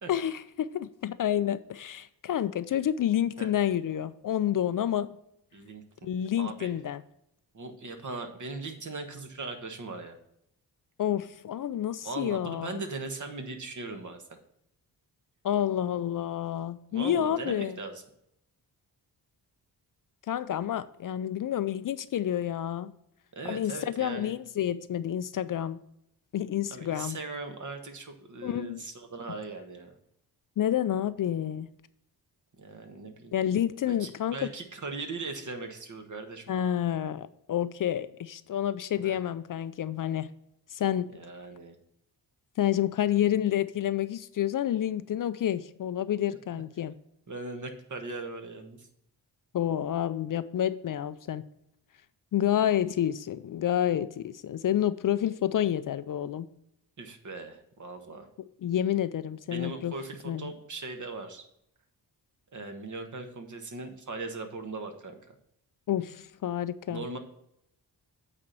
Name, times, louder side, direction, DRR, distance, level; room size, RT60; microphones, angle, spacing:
voice 1, 0.1-5.2 6.0-7.0 11.0-12.8 15.4-17.8 20.3-22.9 23.4-25.8 26.3-27.2 28.4-28.8 30.6-31.7 33.3-34.4 36.5-40.3 40.7-41.1 42.6-46.9 49.5-51.4 52.3-56.5 58.6-59.9 60.2-60.5 65.9-67.2, left 10 dB, 50° left, 0.5 m, -29 dB
voice 2, 5.5-5.8 6.4-6.7 7.5-10.2 12.0-14.4 16.9-18.0 23.3-24.3 26.7-29.9 32.6-33.3 33.9-36.4 39.0-39.2 41.1-41.7 46.3-46.4 47.3-48.9 57.0-58.3 59.5-61.4 62.5-65.3 66.9-67.2, right 3 dB, 45° right, 1.4 m, -39 dB
8.6 x 4.4 x 6.2 m
cardioid pair, 90°, 41 cm